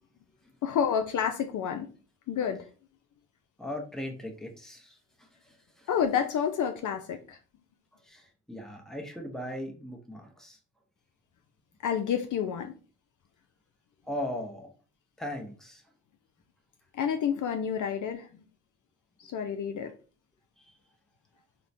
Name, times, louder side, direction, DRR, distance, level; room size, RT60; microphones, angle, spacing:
voice 1, 0.6-1.9 2.3-2.7 5.9-7.4 11.8-12.7 16.9-18.3 19.2-19.9, left 8 dB, 55° left, 5 dB, 0.4 m, -29 dB
voice 2, 3.6-5.9 8.0-10.6 14.0-14.7 15.2-15.8 20.6-20.7, left 1 dB, ahead, 2 dB, 0.8 m, -39 dB
3.0 x 2.1 x 2.6 m, 0.36 s
supercardioid pair, 45°, 37 cm